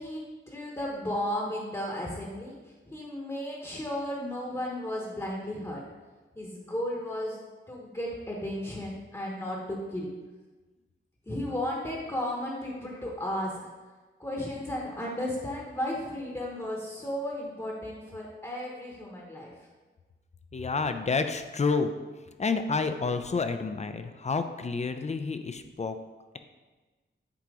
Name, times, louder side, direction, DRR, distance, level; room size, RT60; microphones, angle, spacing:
voice 1, 0.0-5.8 6.3-7.4 7.7-10.1 11.3-13.7 14.2-19.5, left 1 dB, 15° left, -3 dB, 0.9 m, -34 dB
voice 2, 20.5-21.9 22.4-26.0, left 4 dB, 35° left, 8 dB, 0.4 m, -29 dB
7.5 x 2.9 x 4.8 m, 1.3 s
wide cardioid pair, 105°, 21 cm